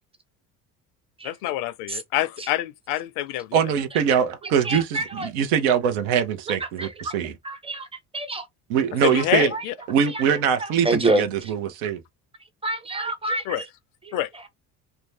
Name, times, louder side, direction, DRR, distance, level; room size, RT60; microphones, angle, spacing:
voice 1, 1.3-3.6 9.0-9.7 13.5-13.6 14.1-14.3, left 14 dB, 85° left, 0.5 m, -26 dB
voice 2, 3.5-7.3 8.7-9.5 9.9-12.0, right 8 dB, 90° right, 0.8 m, -23 dB
voice 3, 4.4-5.3 6.5-7.1 7.4-8.5 9.0-9.2 9.5-9.6 10.1-10.2 10.6-11.5 12.6-13.7 14.2-14.5, right 2 dB, 15° right, 0.7 m, -28 dB
2.6 x 2.2 x 3.2 m
supercardioid pair, 80°, 39 cm